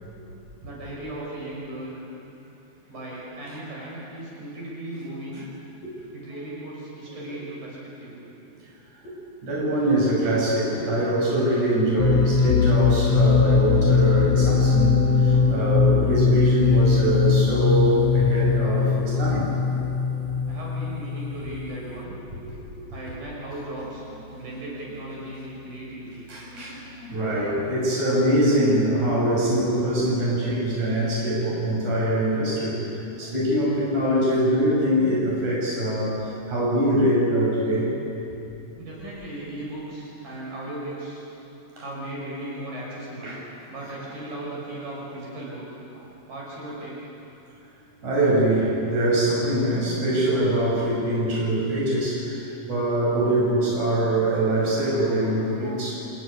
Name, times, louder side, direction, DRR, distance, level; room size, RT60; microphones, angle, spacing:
voice 1, 0.6-2.0 2.9-5.5 6.1-8.2 20.4-22.2 22.9-24.0 24.3-26.2 38.8-41.2 41.8-43.4 43.7-45.8 46.3-47.1, right 1 dB, 70° right, -4 dB, 8.0 m, -36 dB
voice 2, 9.4-19.5 22.4-22.5 23.0-23.1 26.3-37.9 41.8-41.9 43.2-43.4 48.0-55.9, right 1 dB, 50° right, -5 dB, 7.4 m, -23 dB
sound 1, 12.0-21.6, left 5 dB, 70° left, 1.5 m, -20 dB
Piano, 14.1-26.0, right 2 dB, 15° right, 4.2 m, -38 dB
28.5 x 17.5 x 9.8 m, 2.9 s
omnidirectional pair, 4.2 m